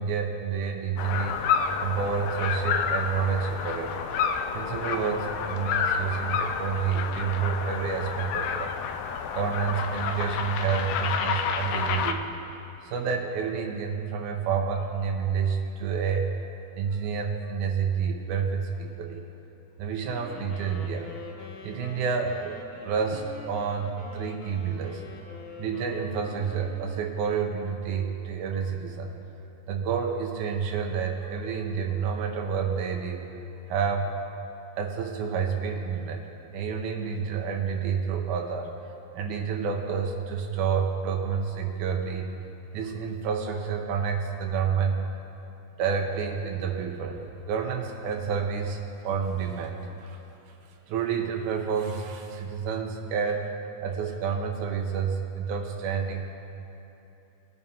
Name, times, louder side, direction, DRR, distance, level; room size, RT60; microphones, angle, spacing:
voice 1, 0.0-1.4 1.8-4.1 4.5-8.8 9.3-12.3 12.8-16.3 16.7-19.2 19.8-21.1 21.6-22.6 22.8-25.0 25.6-29.1 29.7-33.3 33.7-34.1 34.8-36.2 36.5-42.3 42.7-45.0 45.8-50.2 50.9-53.5 53.8-56.3, right 6 dB, 85° right, 2 dB, 2.3 m, -29 dB
sound 1, 1.0-12.1, left 6 dB, 75° left, 1.5 m, -29 dB
Wind instrument woodwind instrument, 20.0-27.5, left 3 dB, 55° left, 1.6 m, -46 dB
21.0 x 8.9 x 2.8 m, 2.9 s
omnidirectional pair, 3.4 m